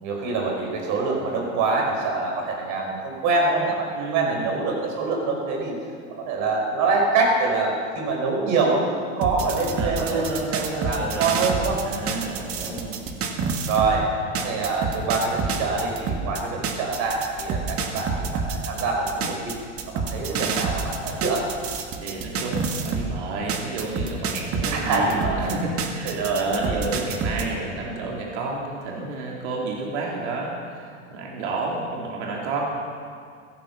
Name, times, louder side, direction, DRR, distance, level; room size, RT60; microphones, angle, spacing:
voice 1, 0.0-5.8 6.2-10.3 10.5-11.8 12.6-13.0 13.7-14.1 14.3-19.5 19.9-21.5 24.7-25.5 26.0-26.5, right 3 dB, 55° right, 0 dB, 5.7 m, -25 dB
voice 2, 3.9-4.5 9.7-11.3 11.8-12.7 22.0-32.7, right 3 dB, 70° right, -2 dB, 3.5 m, -30 dB
sound 1, 9.2-14.0 14.3-23.1 23.5-27.5, right 5 dB, 40° right, 1.9 m, -28 dB
17.0 x 15.0 x 5.7 m, 2.2 s
hypercardioid pair, 95°, 36 cm